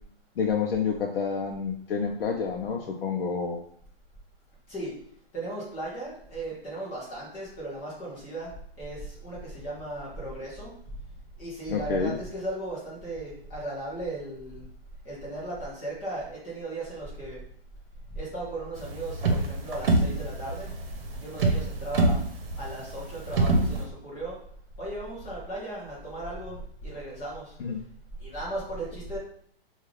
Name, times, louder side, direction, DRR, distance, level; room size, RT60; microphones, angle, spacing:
voice 1, 0.4-3.6 11.7-12.1 27.6-27.8, left 6 dB, 75° left, 1 dB, 0.6 m, -28 dB
voice 2, 5.3-8.5 8.8-10.7 11.4-14.7 15.0-17.4 18.1-20.7 21.2-22.2 22.6-24.4 24.8-27.5 28.2-29.2, right 1 dB, 10° left, -8 dB, 0.5 m, -36 dB
sound 1, 18.8-23.8, right 2 dB, 70° right, 0.9 m, -26 dB
3.4 x 2.4 x 4.4 m, 0.64 s
hypercardioid pair, 175°, 29 cm